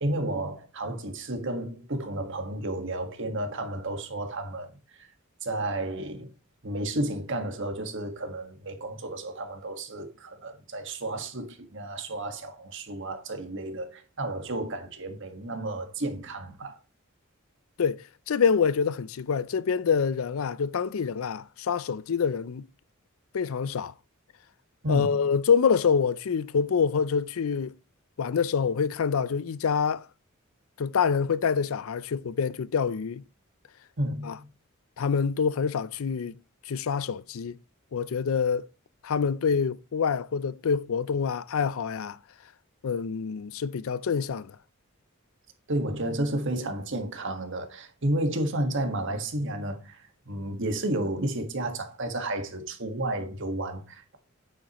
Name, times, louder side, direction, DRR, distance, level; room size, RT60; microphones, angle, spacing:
voice 1, 0.0-5.1 5.4-6.3 6.6-16.8 24.8-25.3 34.0-34.5 45.7-54.2, right 1 dB, 60° right, 1.6 m, -32 dB
voice 2, 17.8-22.7 23.3-23.9 24.9-27.7 28.2-30.0 30.8-33.2 34.2-34.4 35.0-36.3 36.7-37.6 37.9-38.7 39.0-42.2 42.8-44.6, left 6 dB, 75° left, 0.5 m, -26 dB
9.0 x 7.8 x 3.0 m
head